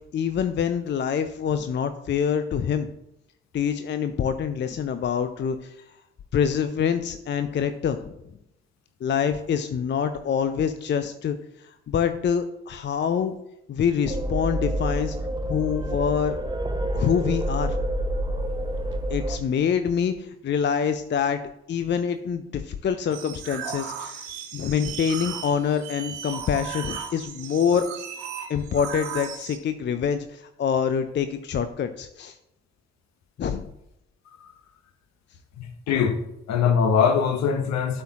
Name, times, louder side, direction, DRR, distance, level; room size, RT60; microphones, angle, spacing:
voice 1, 0.1-2.9 3.5-5.8 6.3-8.2 9.0-13.4 13.7-15.2 15.4-16.4 16.9-17.8 19.1-21.4 21.7-27.9 28.5-32.4 33.4-33.7, left 7 dB, 35° left, 0.5 m, -26 dB
sound 1, 14.0-19.4, right 1 dB, 15° right, 0.8 m, -28 dB
sound 2, 23.1-29.6, right 8 dB, 80° right, 0.8 m, -36 dB
voice 2, 35.6-36.2 36.5-38.0, left 7 dB, 60° left, 1.0 m, -22 dB
12.5 x 4.4 x 2.9 m
figure-of-eight pair, 40°, 31 cm